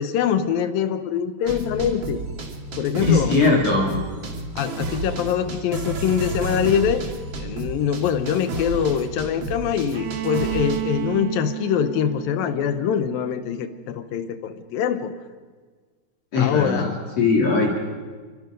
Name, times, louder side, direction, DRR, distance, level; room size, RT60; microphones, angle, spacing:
voice 1, 0.0-2.2 2.8-3.4 4.6-7.1 7.4-15.1 16.4-16.9, left 8 dB, 75° left, 11 dB, 2.7 m, -24 dB
sound 1, 1.5-10.8, right 2 dB, 40° right, 2.2 m, -31 dB
voice 2, 3.1-3.9 16.3-17.7, left 4 dB, 45° left, -1 dB, 3.7 m, -19 dB
Bowed string instrument, 9.9-13.8, right 14 dB, 80° right, 1.5 m, -32 dB
27.5 x 24.5 x 5.2 m, 1.5 s
omnidirectional pair, 4.2 m